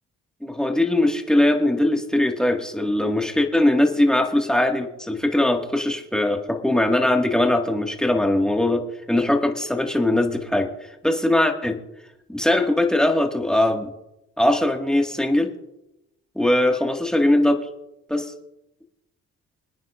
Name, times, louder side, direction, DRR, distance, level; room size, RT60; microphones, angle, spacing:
voice 1, 0.4-10.7 11.0-11.8 12.3-13.9 14.4-15.5 16.4-17.7 18.1-18.3, left 1 dB, ahead, 2 dB, 1.8 m, -21 dB
26.5 x 9.5 x 2.5 m, 0.89 s
cardioid pair, 90°, 30 cm